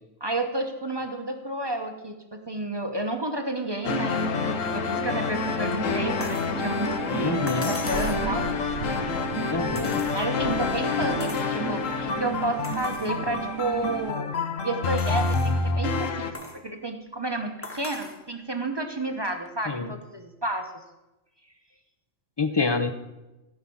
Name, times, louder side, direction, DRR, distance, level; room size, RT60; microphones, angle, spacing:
voice 1, 0.2-8.8 10.1-16.4 16.6-20.7, right 2 dB, 20° right, 5 dB, 0.8 m, -31 dB
sound 1, 3.8-16.3, left 4 dB, 70° left, 1.2 m, -28 dB
sound 2, 4.3-14.1, right 10 dB, 90° right, 1.1 m, -35 dB
sound 3, 6.2-6.5 7.5-8.3 9.7-10.5 11.2-11.5 12.0-12.1 12.6-13.1 13.7-13.8 15.0-15.6 16.3-16.6 17.6-18.2 19.5-19.6, left 2 dB, 10° left, 1.1 m, -40 dB
voice 2, 7.2-7.7 9.5-10.0 19.7-19.9 22.4-22.9, left 4 dB, 35° left, 9 dB, 0.4 m, -27 dB
15.0 x 5.8 x 7.0 m, 1.0 s
omnidirectional pair, 1.5 m